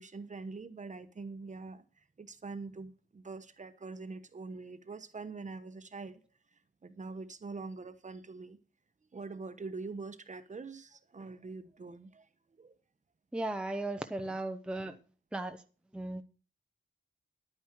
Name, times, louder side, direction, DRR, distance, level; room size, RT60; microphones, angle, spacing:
voice 1, 0.0-1.8 2.2-6.2 6.8-8.6 9.1-12.3 12.6-12.7, right 4 dB, 35° right, 1.0 m, -44 dB
voice 2, 13.3-15.0 15.3-15.6 15.9-16.2, right 2 dB, 5° right, 0.7 m, -36 dB
11.0 x 9.5 x 4.5 m
wide cardioid pair, 180°, 20 cm